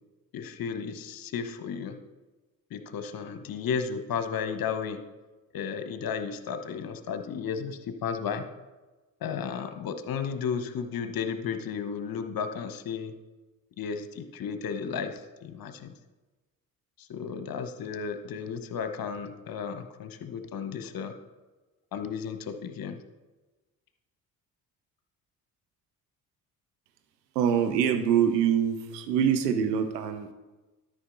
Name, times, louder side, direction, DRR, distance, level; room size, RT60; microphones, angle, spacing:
voice 1, 0.3-2.0 2.7-5.0 5.5-8.5 9.2-13.1 13.8-15.9 17.0-21.1 21.9-23.0, left 6 dB, 45° left, 9 dB, 1.1 m, -33 dB
voice 2, 27.3-30.3, right 8 dB, 80° right, 8 dB, 0.9 m, -25 dB
12.5 x 5.3 x 3.9 m, 1.2 s
figure-of-eight pair, 45°, 49 cm